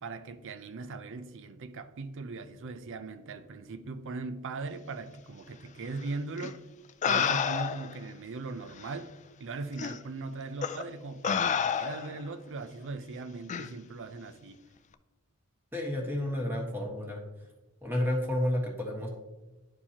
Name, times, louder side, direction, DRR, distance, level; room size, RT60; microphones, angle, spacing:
voice 1, 0.0-6.6 7.0-9.1 9.4-14.6, right 3 dB, 60° right, 0.5 m, -39 dB
sound 1, 6.4-6.5 7.0-8.0 8.8-8.9 9.8-10.0 10.6-10.8 11.2-12.2 13.5-13.7, left 7 dB, 35° left, 0.3 m, -29 dB
voice 2, 15.7-17.2 17.8-19.1, left 1 dB, 10° right, 1.5 m, -31 dB
11.0 x 4.5 x 2.9 m
head